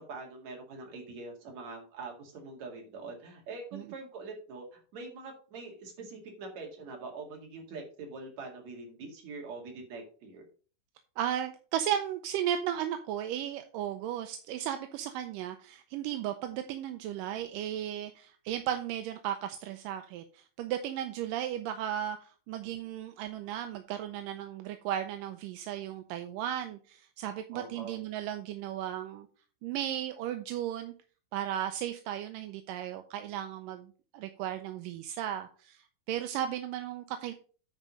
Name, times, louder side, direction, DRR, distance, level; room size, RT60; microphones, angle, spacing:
voice 1, 0.0-10.4 27.5-28.0, right 3 dB, 55° right, 1 dB, 3.2 m, -44 dB
voice 2, 11.2-29.3 29.6-30.9 31.3-37.3, right 10 dB, 80° right, 7 dB, 2.2 m, -35 dB
9.2 x 5.0 x 5.2 m, 0.39 s
omnidirectional pair, 4.1 m